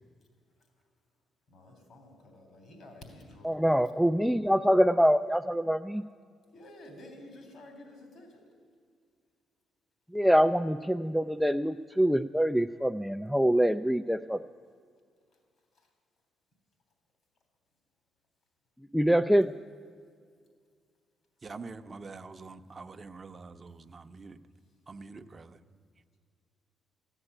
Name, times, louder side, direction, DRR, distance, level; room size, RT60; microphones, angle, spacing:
voice 1, 1.5-4.2 6.5-8.4, left 1 dB, 70° left, 5 dB, 3.5 m, -51 dB
voice 2, 3.4-6.0 10.1-14.4 18.9-19.5, equal, ahead, 7 dB, 0.3 m, -25 dB
voice 3, 21.4-24.4 24.9-25.6, right 4 dB, 35° right, 8 dB, 0.7 m, -45 dB
14.0 x 10.0 x 9.9 m, 2.1 s
cardioid pair, 90°, 0 cm